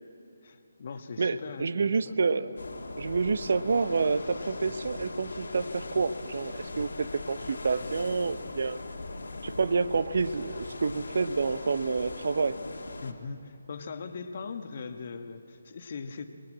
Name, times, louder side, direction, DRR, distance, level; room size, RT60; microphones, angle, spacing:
voice 1, 0.4-2.2 13.0-16.2, left 5 dB, 40° left, 8 dB, 1.4 m, -40 dB
voice 2, 1.2-2.6 3.0-8.8 9.4-12.6, right 4 dB, 50° right, 14 dB, 0.8 m, -28 dB
sound 1, 2.6-13.1, left 2 dB, 60° left, 2.0 m, -40 dB
26.0 x 20.5 x 7.8 m, 2.6 s
figure-of-eight pair, 145°, 0 cm